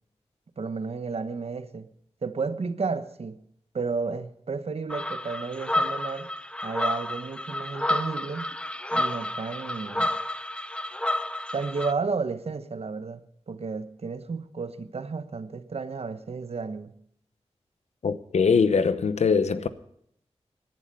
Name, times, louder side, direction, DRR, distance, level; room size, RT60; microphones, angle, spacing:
voice 1, 0.6-1.9 2.2-3.4 3.7-6.3 6.6-8.6 8.9-10.1 11.5-17.0, right 4 dB, 65° right, 1.0 m, -32 dB
sound 1, 4.9-11.9, left 1 dB, 10° left, 0.7 m, -30 dB
voice 2, 18.0-19.7, left 5 dB, 85° left, 0.9 m, -22 dB
19.0 x 11.0 x 5.4 m
wide cardioid pair, 65°, 11 cm